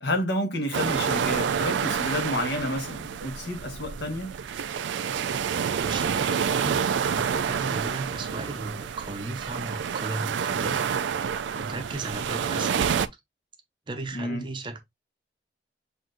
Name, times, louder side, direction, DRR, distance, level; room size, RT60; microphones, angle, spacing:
voice 1, 0.0-4.3 14.1-14.5, left 1 dB, 75° left, 1.2 m, -30 dB
sound 1, 0.7-13.1, right 7 dB, 85° right, 0.4 m, -28 dB
voice 2, 5.8-10.8 11.5-13.1 13.9-14.8, right 2 dB, 25° right, 0.6 m, -35 dB
7.4 x 2.6 x 2.4 m
head